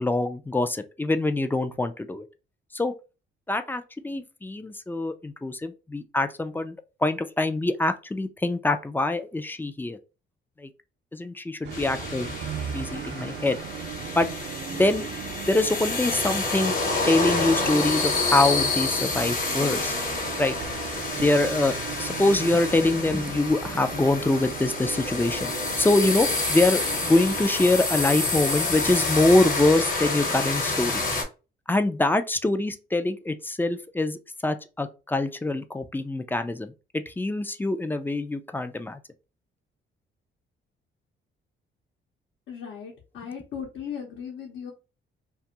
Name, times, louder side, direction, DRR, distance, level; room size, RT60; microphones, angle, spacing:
voice 1, 0.0-2.3 2.7-2.9 3.5-6.8 7.0-10.0 10.6-10.7 11.1-12.4 12.7-13.6 14.1-14.3 14.7-15.0 15.5-19.9 20.4-20.5 21.2-31.0 31.7-39.0, left 2 dB, 10° left, 0.3 m, -24 dB
sound 1, 11.6-27.5, right 9 dB, 60° right, 0.5 m, -37 dB
sound 2, 11.7-31.2, left 3 dB, 45° left, 1.0 m, -28 dB
voice 2, 42.5-44.7, left 7 dB, 75° left, 0.8 m, -37 dB
2.5 x 2.3 x 2.8 m
cardioid pair, 90°, 20 cm